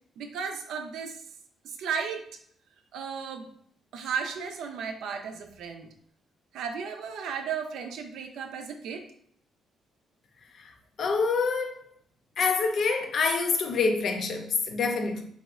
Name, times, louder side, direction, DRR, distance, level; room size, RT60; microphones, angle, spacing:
voice 1, 0.2-1.2 1.6-2.2 2.9-3.5 3.9-5.9 6.5-9.0, right 6 dB, 80° right, 0.4 m, -34 dB
voice 2, 10.5-11.9 12.4-15.2, left 4 dB, 60° left, 0.5 m, -27 dB
3.1 x 2.7 x 2.3 m
cardioid pair, 90°, 0 cm